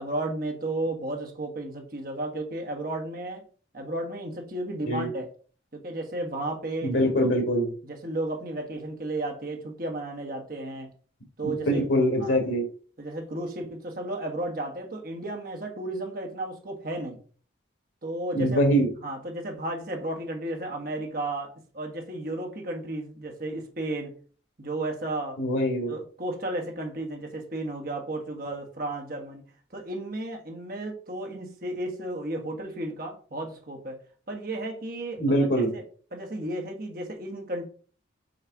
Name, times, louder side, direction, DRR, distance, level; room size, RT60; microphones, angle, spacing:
voice 1, 0.0-3.4 3.7-5.3 5.7-7.3 7.8-10.9 11.4-11.8 12.2-12.4 13.0-17.2 18.0-18.6 19.0-21.5 21.7-24.1 24.6-25.4 25.9-29.4 29.7-34.0 34.3-35.4 35.7-35.8 36.1-37.7, right 1 dB, 50° right, 2 dB, 1.4 m, -33 dB
voice 2, 6.8-7.7 11.4-12.6 18.3-18.9 25.4-25.9 35.2-35.7, equal, 85° left, 4 dB, 1.9 m, -23 dB
6.5 x 3.2 x 4.6 m, 0.42 s
head